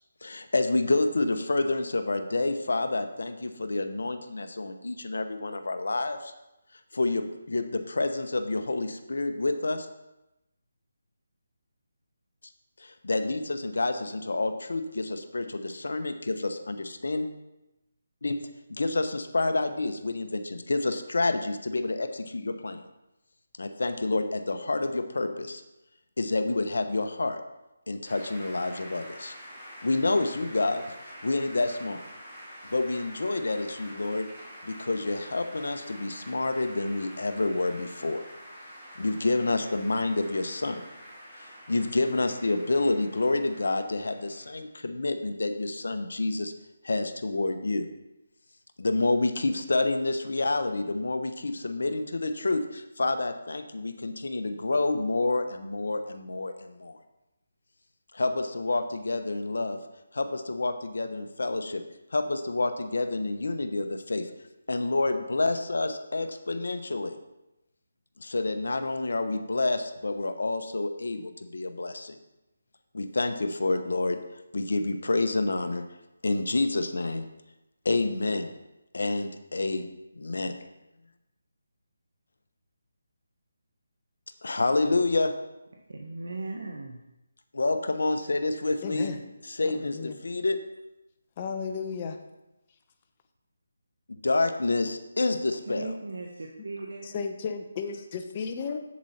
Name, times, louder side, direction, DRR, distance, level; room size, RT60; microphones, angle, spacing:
voice 1, 0.2-6.3 6.9-9.9 12.8-17.3 18.2-18.4 18.7-22.8 23.6-25.6 26.2-27.4 27.9-29.3 29.8-32.0 32.7-34.3 34.6-38.2 39.0-40.8 41.4-46.5 46.8-47.9 48.8-57.0 58.1-59.8 60.1-61.8 62.1-64.3 64.7-67.1 68.2-72.2 72.9-74.2 74.5-75.8 76.2-77.3 77.8-78.5 78.9-79.9 80.1-80.5 84.4-85.3 87.5-89.1 89.5-90.6 94.2-95.9, left 2 dB, 75° left, 8 dB, 0.9 m, -28 dB
sound 1, 28.1-44.7, equal, 10° right, 3.5 m, -47 dB
voice 2, 85.9-87.1 95.6-97.2, right 2 dB, 75° right, 0 dB, 1.2 m, -37 dB
voice 3, 88.8-89.2 89.6-90.2 91.4-92.2 97.1-98.8, left 5 dB, 30° left, 6 dB, 0.8 m, -34 dB
7.7 x 7.3 x 4.2 m, 0.94 s
figure-of-eight pair, 160°, 0 cm